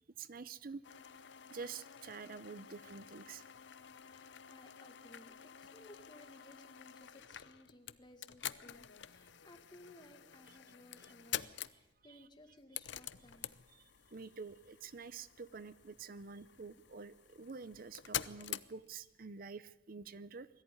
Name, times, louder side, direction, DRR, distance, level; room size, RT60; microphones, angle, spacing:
voice 1, 0.2-0.8 1.5-3.4 12.1-12.2 13.7-20.5, right 5 dB, 50° right, 16 dB, 0.6 m, -48 dB
sound 1, 0.8-19.2, left 11 dB, 75° left, 0.7 m, -48 dB
voice 2, 3.9-13.6, left 1 dB, 25° left, 6 dB, 1.9 m, -60 dB
21.0 x 14.0 x 9.8 m, 1.1 s
head